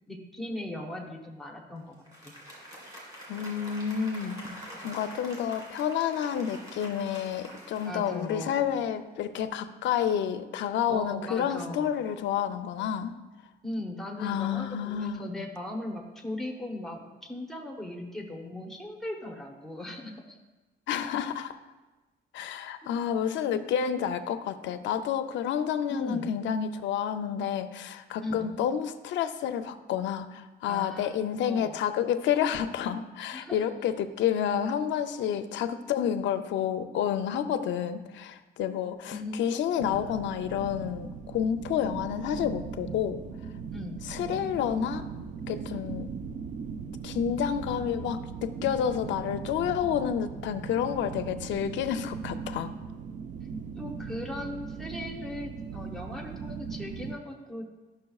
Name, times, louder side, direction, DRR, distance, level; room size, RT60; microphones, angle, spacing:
voice 1, 0.1-2.0 2.2-2.3 4.5-4.9 7.8-8.6 10.9-11.9 13.6-20.4 20.9-21.0 25.9-26.3 28.2-28.5 30.7-31.2 31.4-31.8 33.3-33.6 39.1-40.1 43.7-44.0 53.8-57.7, left 1 dB, ahead, 0 dB, 0.8 m, -38 dB
Applause, 1.9-8.9, equal, 20° right, 2.0 m, -46 dB
voice 2, 3.3-4.4 4.8-13.1 14.2-15.2 20.9-21.6 22.3-43.2 44.1-45.0 45.5-46.1 47.0-52.7, left 9 dB, 85° left, 9 dB, 0.5 m, -29 dB
sound 1, 39.8-57.1, right 6 dB, 40° right, 0.4 m, -39 dB
11.5 x 6.2 x 2.3 m, 1.2 s
cardioid pair, 180°, 19 cm